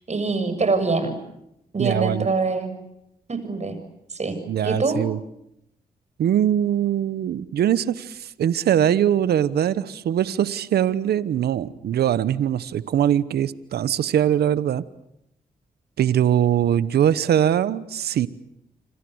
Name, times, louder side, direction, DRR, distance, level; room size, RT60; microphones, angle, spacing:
voice 1, 0.1-1.2 1.7-2.7 3.3-3.8 4.1-4.4 4.6-5.0, right 3 dB, 45° right, 9 dB, 7.1 m, -24 dB
voice 2, 1.8-2.3 4.5-5.2 6.2-14.8 16.0-18.3, right 10 dB, 80° right, 17 dB, 1.0 m, -22 dB
29.0 x 25.5 x 8.0 m, 0.81 s
supercardioid pair, 55°, 16 cm